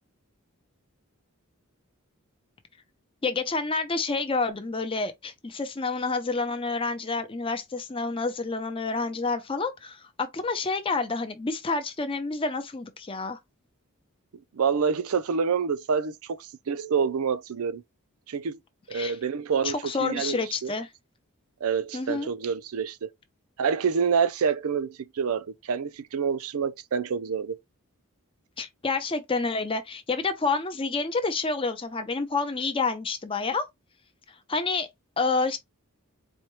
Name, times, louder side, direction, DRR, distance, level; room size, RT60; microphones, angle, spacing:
voice 1, 3.2-13.4 18.9-19.2 19.6-20.9 21.9-22.3 28.6-33.6 34.5-34.9 35.2-35.6, left 4 dB, 25° left, 0.6 m, -28 dB
voice 2, 14.5-17.8 18.3-18.6 18.9-20.7 21.6-23.1 23.6-27.6, right 6 dB, 80° right, 0.5 m, -27 dB
4.2 x 2.2 x 3.1 m
head